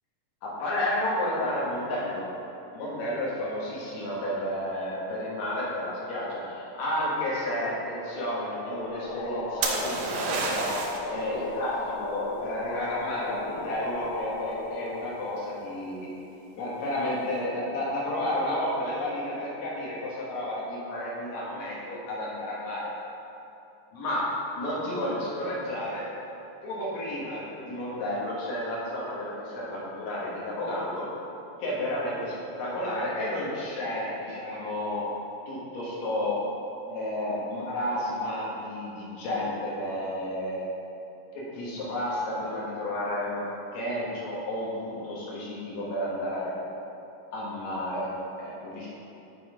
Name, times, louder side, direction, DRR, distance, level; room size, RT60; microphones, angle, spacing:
voice 1, 0.4-2.3 2.7-10.7 11.1-16.1 16.6-22.9 23.9-24.3 24.6-26.1 26.6-31.1 31.6-35.1 35.5-36.4 36.9-40.6 41.3-46.6 47.3-48.1 48.4-48.9, left 1 dB, 60° left, -6 dB, 2.5 m, -31 dB
sound 1, 8.8-16.1, left 2 dB, 90° left, 1.5 m, -36 dB
sound 2, 9.6-11.1 14.8-15.2, right 4 dB, 90° right, 2.5 m, -29 dB
6.2 x 5.9 x 4.8 m, 2.8 s
omnidirectional pair, 4.1 m